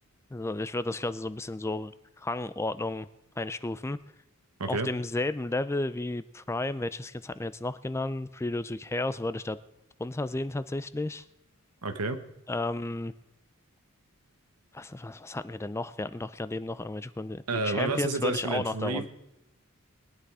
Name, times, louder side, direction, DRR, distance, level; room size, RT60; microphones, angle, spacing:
voice 1, 0.3-3.1 3.4-4.0 4.7-9.6 10.0-11.2 12.5-13.1 14.7-19.1, left 2 dB, 10° left, 14 dB, 0.4 m, -33 dB
voice 2, 11.8-12.2 17.5-19.1, right 3 dB, 90° right, 9 dB, 1.3 m, -30 dB
20.5 x 10.5 x 4.8 m, 0.91 s
head